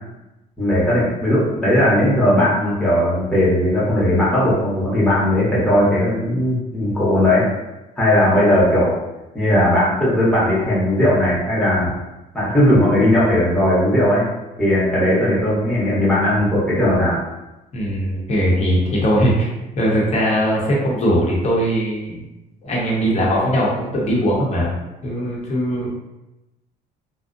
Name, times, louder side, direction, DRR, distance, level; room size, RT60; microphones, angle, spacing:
voice 1, 0.6-7.5 8.0-8.9 9.3-11.9 12.3-14.3 14.6-17.2, left 1 dB, 5° left, -9 dB, 0.8 m, -17 dB
voice 2, 17.7-19.5 19.8-22.2 22.6-24.7 25.0-25.9, equal, 40° left, -4 dB, 0.8 m, -20 dB
2.5 x 2.0 x 2.5 m, 0.98 s
cardioid pair, 110°, 17 cm